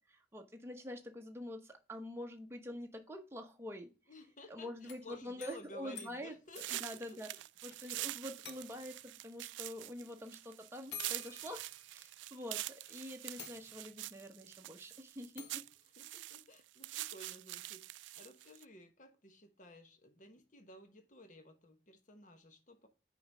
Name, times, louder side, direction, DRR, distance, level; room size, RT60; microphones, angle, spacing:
voice 1, 0.1-3.9 4.5-6.3 6.7-7.3 7.6-12.6 12.9-15.6, left 1 dB, 15° right, 3 dB, 1.0 m, -46 dB
voice 2, 4.1-7.2 10.0-10.1 16.0-22.9, left 1 dB, 45° left, 7 dB, 1.0 m, -55 dB
sound 1, 4.7-7.8 8.0-8.1 8.4-9.0 10.1-10.2 10.9-12.3 12.8-12.9 13.4-14.1 15.4-15.7, left 6 dB, 70° left, 1.1 m, -52 dB
sound 2, 6.5-18.6, right 17 dB, 85° right, 0.3 m, -45 dB
5.5 x 5.0 x 5.4 m, 0.32 s
head